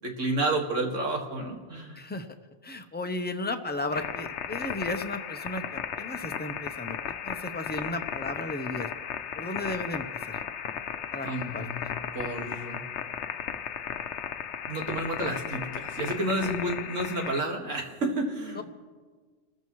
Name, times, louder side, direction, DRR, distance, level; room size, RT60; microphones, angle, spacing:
voice 1, 0.0-2.0 11.2-12.8 14.7-18.6, right 1 dB, 90° right, 1 dB, 2.3 m, -30 dB
voice 2, 1.9-2.3 2.6-7.0 7.2-8.9 9.4-10.4 11.1-11.7 18.6-18.7, left 2 dB, 10° left, 6 dB, 0.6 m, -34 dB
sound 1, 3.9-17.4, left 8 dB, 70° left, 0.9 m, -35 dB
28.0 x 14.5 x 3.1 m, 1.5 s
omnidirectional pair, 1.2 m